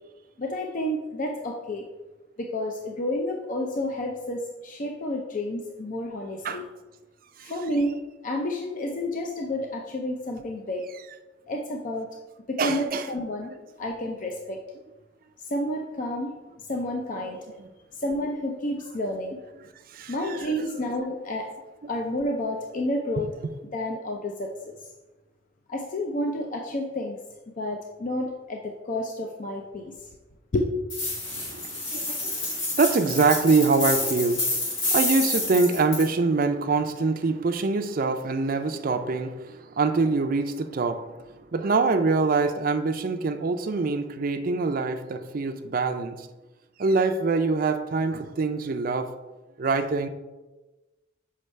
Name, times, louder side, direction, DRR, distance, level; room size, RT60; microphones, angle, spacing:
voice 1, 0.4-1.8 2.4-6.6 7.4-8.0 8.2-10.8 11.5-12.1 12.5-13.5 13.8-14.6 15.4-16.3 16.7-17.4 18.0-19.4 20.1-21.5 21.9-23.3 23.7-24.5 25.7-27.2 27.6-29.9 30.5-30.7, left 1 dB, 45° left, 1 dB, 0.5 m, -30 dB
voice 2, 12.6-13.1 17.1-17.3 17.6-17.7 19.9-20.7 21.0-21.1 31.2-41.0 41.5-46.3 46.8-49.1 49.6-50.1, right 3 dB, 50° right, 8 dB, 0.5 m, -25 dB
sound 1, 30.9-36.1, left 2 dB, 90° left, 1.9 m, -28 dB
6.6 x 5.3 x 3.2 m, 1.1 s
head